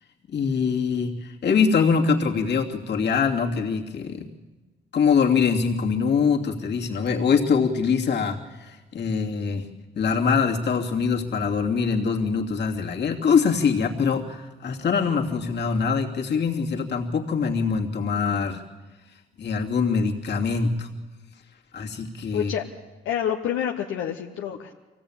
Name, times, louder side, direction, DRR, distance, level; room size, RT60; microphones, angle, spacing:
voice 1, 0.3-4.3 4.9-9.7 9.9-18.6 19.4-20.9 21.7-22.5, left 5 dB, 60° left, 0 dB, 2.8 m, -23 dB
voice 2, 22.3-22.6 23.0-24.7, left 9 dB, 90° left, 2 dB, 1.2 m, -27 dB
24.5 x 17.5 x 8.8 m, 1.2 s
cardioid pair, 90°, 20 cm